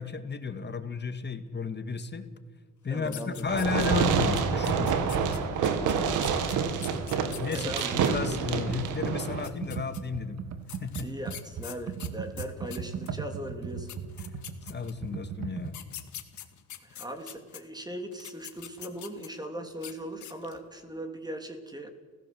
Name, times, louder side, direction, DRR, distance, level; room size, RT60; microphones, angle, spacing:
voice 1, 0.0-2.2 2.8-5.2 7.4-10.4 10.8-11.1 14.7-15.8, left 5 dB, 35° left, 9 dB, 2.2 m, -33 dB
voice 2, 2.9-3.5 5.4-5.7 7.4-8.0 11.0-13.9 16.8-21.9, equal, 15° right, 5 dB, 3.1 m, -39 dB
sound 1, 3.0-4.1 4.4-8.1 9.1-10.0 10.7-13.2 13.6-13.7 13.9-15.1 15.7-17.6 18.1-19.4 19.8-19.9 20.2-20.6, left 11 dB, 70° left, 2.3 m, -44 dB
Fireworks, 3.5-9.5, right 6 dB, 90° right, 2.3 m, -27 dB
Computer keyboard, 6.3-15.7, right 7 dB, 60° right, 2.1 m, -38 dB
29.5 x 16.5 x 7.9 m, 1.5 s
cardioid pair, 90°, 30 cm